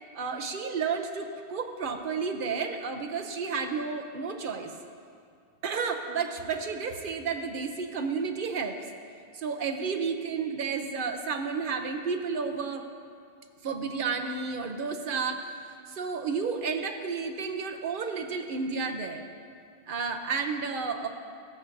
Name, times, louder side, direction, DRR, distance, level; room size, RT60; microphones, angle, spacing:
voice 1, 0.1-4.7 5.6-8.8 9.3-12.9 13.6-15.4 15.9-19.2 19.9-21.1, right 5 dB, 60° right, 5 dB, 0.8 m, -31 dB
15.0 x 8.3 x 2.6 m, 2.3 s
omnidirectional pair, 1.0 m